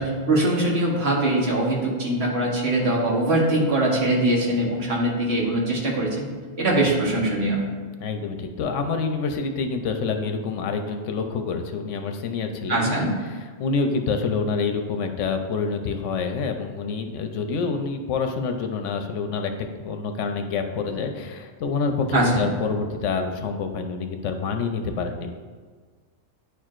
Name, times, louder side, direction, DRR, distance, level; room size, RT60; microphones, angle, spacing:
voice 1, 0.0-6.3 6.6-7.7 12.7-13.2 22.1-22.5, right 1 dB, 55° right, -3 dB, 1.4 m, -22 dB
voice 2, 8.0-13.1 13.6-25.3, left 4 dB, 80° left, 5 dB, 1.0 m, -27 dB
9.7 x 4.5 x 2.5 m, 1.5 s
omnidirectional pair, 1.3 m